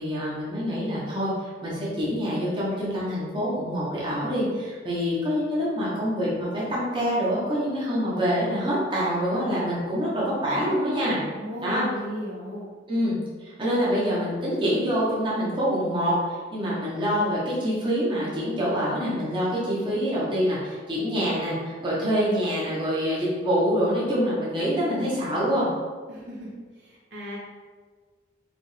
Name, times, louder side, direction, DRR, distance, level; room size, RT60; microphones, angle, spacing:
voice 1, 0.0-11.2 11.6-11.9 12.9-13.1 13.4-25.7, equal, 25° right, -7 dB, 1.1 m, -26 dB
voice 2, 11.3-12.7 26.1-27.4, equal, 70° right, -5 dB, 1.1 m, -36 dB
5.2 x 2.5 x 3.3 m, 1.5 s
head